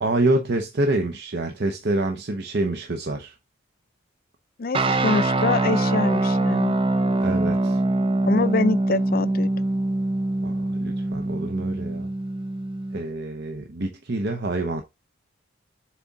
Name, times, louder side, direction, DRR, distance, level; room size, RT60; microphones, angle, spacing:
voice 1, 0.0-3.3 7.2-7.8 10.4-12.1 12.9-14.8, right 2 dB, 50° right, 0.8 m, -26 dB
voice 2, 4.6-6.8 8.2-9.5, left 3 dB, 45° left, 0.4 m, -25 dB
sound 1, 4.7-13.0, right 2 dB, 25° right, 0.4 m, -24 dB
7.7 x 3.6 x 4.0 m
head